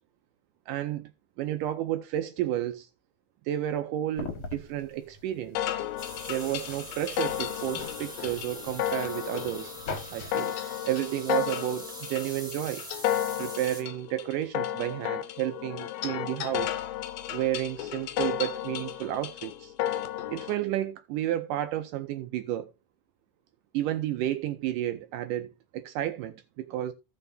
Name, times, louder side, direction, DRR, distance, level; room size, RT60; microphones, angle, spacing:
voice 1, 0.7-1.1 1.4-2.9 3.5-5.7 6.3-9.7 10.1-10.6 10.9-12.9 13.4-16.8 17.3-19.7 20.3-22.7 23.7-26.9, right 12 dB, 80° right, 1.9 m, -31 dB
sound 1, 4.1-10.3, left 4 dB, 55° left, 2.1 m, -43 dB
sound 2, 5.6-20.6, left 12 dB, 75° left, 2.5 m, -33 dB
sound 3, 6.0-13.8, equal, ahead, 2.0 m, -43 dB
16.0 x 5.6 x 2.7 m
omnidirectional pair, 4.3 m